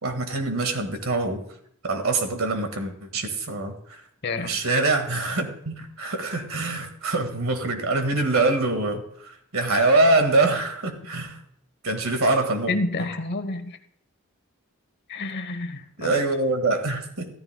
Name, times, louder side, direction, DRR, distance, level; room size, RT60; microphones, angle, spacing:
voice 1, 0.0-1.4 1.8-4.0 4.4-11.4 11.8-12.7 16.0-17.3, right 2 dB, 80° right, 1.8 m, -24 dB
voice 2, 4.2-4.6 12.7-13.8 15.1-16.2, left 2 dB, 55° left, 0.9 m, -29 dB
14.0 x 13.5 x 2.3 m
head